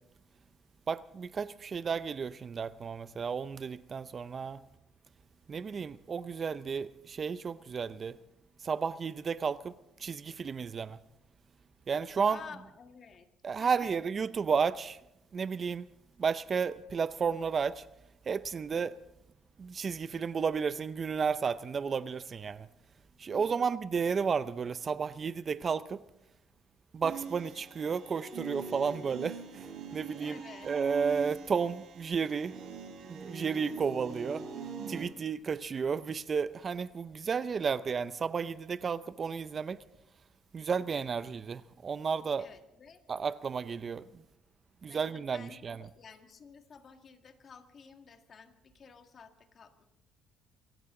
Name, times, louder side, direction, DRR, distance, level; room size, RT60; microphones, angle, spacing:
voice 1, 0.9-4.6 5.5-8.2 8.6-9.7 10.0-11.0 11.9-12.4 13.4-15.0 15.3-15.9 16.2-17.8 18.3-19.0 19.6-22.7 23.2-26.0 26.9-29.7 29.9-30.4 30.6-32.5 33.1-34.4 34.9-39.8 40.5-42.5 43.1-44.2 44.8-45.8, right 6 dB, 40° right, 0.5 m, -32 dB
voice 2, 12.3-13.3 13.6-14.0 23.3-23.7 30.2-30.7 42.4-43.0 44.8-49.8, left 6 dB, 45° left, 1.9 m, -52 dB
sound 1, 27.0-35.0, right 5 dB, 65° right, 5.2 m, -43 dB
25.0 x 15.0 x 3.8 m
cardioid pair, 100°, 0 cm